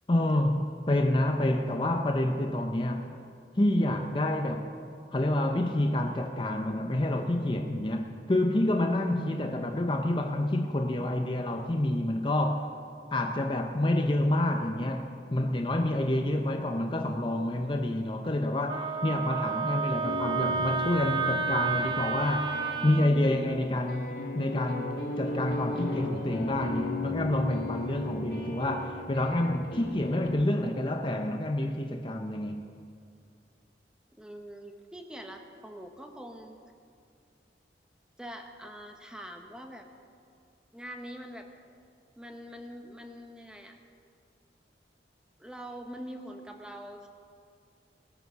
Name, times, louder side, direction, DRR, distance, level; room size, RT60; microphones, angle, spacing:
voice 1, 0.1-3.1 3.6-4.7 5.1-12.7 13.1-22.5 22.8-32.6, left 1 dB, 25° left, 4 dB, 0.6 m, -28 dB
Wind instrument woodwind instrument, 18.7-23.1, right 5 dB, 25° right, 0.7 m, -30 dB
sound 1, 20.0-30.3, left 2 dB, 60° left, 2.2 m, -37 dB
voice 2, 34.2-36.6 38.2-39.9 40.7-41.5 42.2-43.8 45.4-47.1, equal, 5° right, 4 dB, 1.0 m, -44 dB
18.5 x 9.4 x 6.7 m, 2.3 s
head